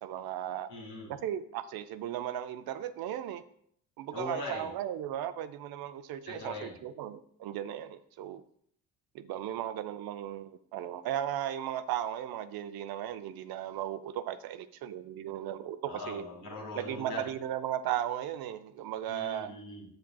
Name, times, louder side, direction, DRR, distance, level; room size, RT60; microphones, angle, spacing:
voice 1, 0.0-0.7 1.1-3.4 4.0-8.4 9.1-16.2 16.8-19.5, right 11 dB, 50° right, 0.6 m, -36 dB
voice 2, 0.7-1.1 4.1-4.7 6.3-6.7 15.8-17.2 19.1-19.9, left 2 dB, 80° left, 2.4 m, -40 dB
7.7 x 6.8 x 2.3 m
hypercardioid pair, 55°, 49 cm